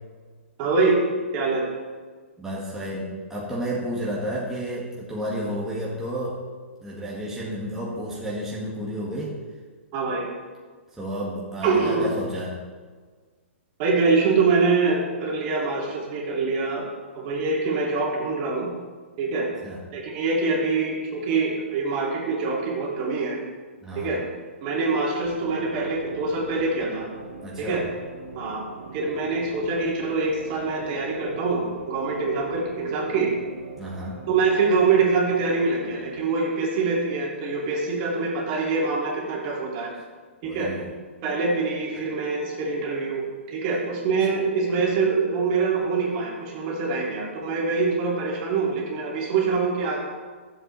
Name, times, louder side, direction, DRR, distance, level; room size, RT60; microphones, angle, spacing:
voice 1, 0.6-1.0 1.3-1.6 9.9-10.3 11.6-12.1 13.8-16.9 17.1-18.7 19.2-19.5 19.9-23.4 24.0-24.2 24.6-27.1 27.6-27.8 28.3-28.6 28.9-33.3 34.3-39.9 40.4-40.7 41.2-50.0, right 4 dB, 40° right, -3 dB, 2.6 m, -24 dB
voice 2, 2.4-6.4 6.8-9.4 10.9-12.6 19.6-19.8 23.8-24.2 27.4-27.8 33.8-34.3 40.4-40.9 42.0-42.1, equal, 5° right, -7 dB, 1.7 m, -31 dB
sound 1, 25.2-36.2, right 3 dB, 55° right, 1.2 m, -42 dB
12.0 x 7.8 x 3.2 m, 1.5 s
hypercardioid pair, 130°, 7 cm